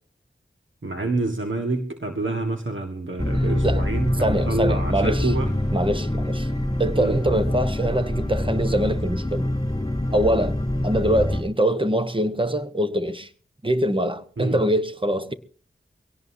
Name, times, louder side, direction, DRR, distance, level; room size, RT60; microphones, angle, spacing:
voice 1, 0.8-5.5 7.0-7.2 14.4-14.6, right 2 dB, 65° right, 1.6 m, -27 dB
sound 1, 3.2-11.4, left 1 dB, 15° left, 2.8 m, -25 dB
voice 2, 4.2-5.3 5.7-6.5 6.8-9.5 10.1-10.6 10.8-13.3 13.6-15.3, right 1 dB, 25° right, 1.2 m, -23 dB
22.5 x 17.5 x 2.8 m
wide cardioid pair, 50°, 21 cm